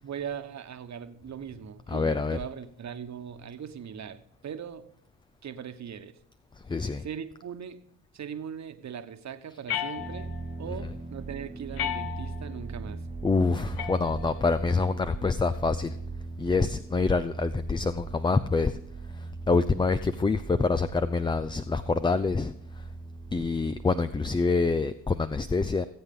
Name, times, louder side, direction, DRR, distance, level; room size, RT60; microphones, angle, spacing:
voice 1, 0.0-4.9 5.4-6.1 7.0-7.8 8.1-10.3 10.6-13.0, right 8 dB, 45° right, 9 dB, 1.3 m, -39 dB
voice 2, 1.9-2.4 6.7-7.1 13.2-16.0 16.4-18.8 19.1-22.8 23.3-25.8, left 4 dB, 10° left, 11 dB, 0.5 m, -26 dB
sound 1, 9.7-10.6 11.8-12.6 13.8-14.6, left 11 dB, 70° left, 1.3 m, -35 dB
sound 2, 10.0-24.8, right 3 dB, 20° right, 1.0 m, -39 dB
19.5 x 8.0 x 3.8 m, 0.72 s
hypercardioid pair, 50°, 39 cm